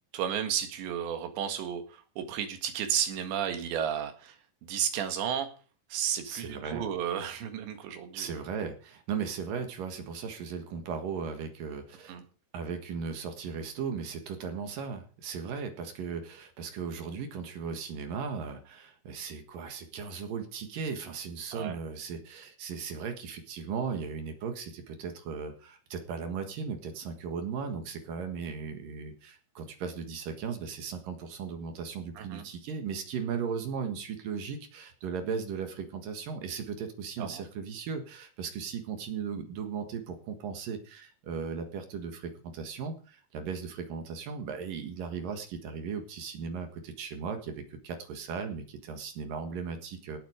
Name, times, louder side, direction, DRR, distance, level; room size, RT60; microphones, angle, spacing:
voice 1, 0.1-5.5 5.9-8.3 12.1-12.2 21.5-21.8 32.2-32.4 37.2-37.4, right 9 dB, 85° right, 7 dB, 4.1 m, -33 dB
voice 2, 6.2-6.9 8.1-12.2 12.5-50.2, right 6 dB, 60° right, 6 dB, 2.9 m, -37 dB
18.0 x 7.9 x 5.0 m, 0.38 s
omnidirectional pair, 5.0 m